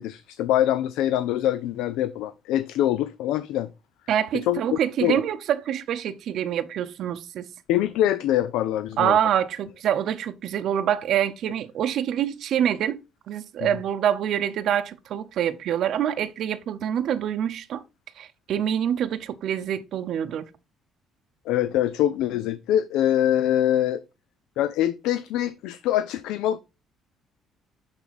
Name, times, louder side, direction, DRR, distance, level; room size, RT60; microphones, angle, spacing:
voice 1, 0.0-3.7 4.5-5.2 7.7-9.2 13.6-13.7 21.5-24.0 24.6-26.6, left 12 dB, 85° left, 0.4 m, -24 dB
voice 2, 4.1-7.5 9.0-13.0 13.3-17.8 18.2-20.4, right 10 dB, 65° right, 0.7 m, -26 dB
10.5 x 3.5 x 4.1 m
cardioid pair, 100°, 0 cm